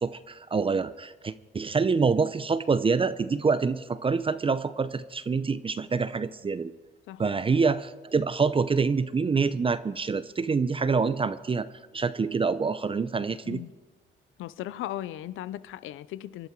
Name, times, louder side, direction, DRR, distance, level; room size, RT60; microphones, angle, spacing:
voice 1, 0.0-6.7 7.2-11.7 11.9-13.6, right 5 dB, 25° right, 0.6 m, -26 dB
voice 2, 14.4-16.5, left 13 dB, 85° left, 0.6 m, -37 dB
25.5 x 12.0 x 4.5 m
cardioid pair, 90°, 20 cm